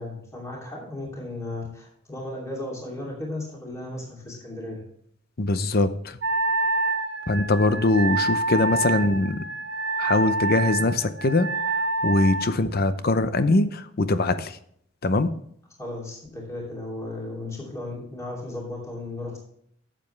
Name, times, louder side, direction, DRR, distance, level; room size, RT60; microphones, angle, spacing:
voice 1, 0.0-4.8 15.8-19.4, left 2 dB, 15° left, -3 dB, 2.8 m, -35 dB
voice 2, 5.4-6.2 7.3-9.4 10.0-11.5 12.0-14.6 15.0-15.3, left 2 dB, 50° left, 12 dB, 0.7 m, -22 dB
Wind instrument woodwind instrument, 6.2-12.5, right 2 dB, 60° right, 1.0 m, -27 dB
11.5 x 7.6 x 3.3 m, 0.68 s
head